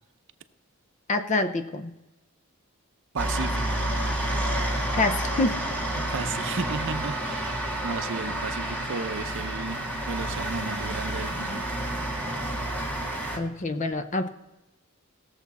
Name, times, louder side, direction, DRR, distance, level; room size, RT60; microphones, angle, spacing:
voice 1, 1.1-1.9 4.9-5.6 13.4-14.3, left 2 dB, 35° left, 8 dB, 0.6 m, -26 dB
voice 2, 3.1-3.9 6.0-11.9, right 4 dB, 65° right, 11 dB, 0.6 m, -34 dB
sound 1, 3.2-13.4, right 1 dB, 5° left, 1.7 m, -29 dB
19.0 x 7.2 x 4.1 m, 1.0 s
head